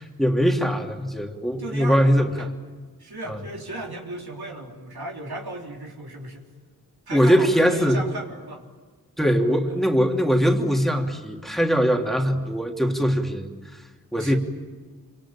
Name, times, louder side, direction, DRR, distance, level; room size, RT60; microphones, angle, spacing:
voice 1, 0.0-2.5 3.3-3.4 7.1-8.0 9.2-13.5 14.1-14.4, equal, ahead, 2 dB, 2.9 m, -21 dB
voice 2, 1.6-2.5 3.0-6.5 7.1-8.6 9.7-9.8 14.1-14.4, right 2 dB, 90° right, 0 dB, 3.7 m, -36 dB
26.5 x 25.0 x 8.9 m, 1.4 s
wide cardioid pair, 45°, 37 cm